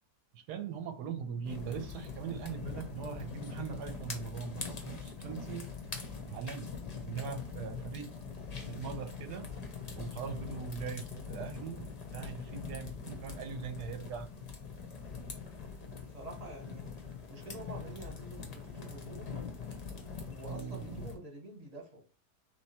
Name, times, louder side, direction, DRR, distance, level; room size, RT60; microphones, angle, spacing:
voice 1, 0.3-5.7 6.3-6.7 7.0-8.1 8.7-9.5 9.9-14.3 20.4-21.1, right 6 dB, 85° right, 7 dB, 1.3 m, -41 dB
sound 1, 1.4-21.2, left 5 dB, 45° left, 0.5 m, -43 dB
voice 2, 16.1-16.9 17.3-19.4 20.3-22.0, right 2 dB, 25° right, 0 dB, 1.0 m, -48 dB
3.5 x 3.0 x 4.2 m, 0.35 s
omnidirectional pair, 1.7 m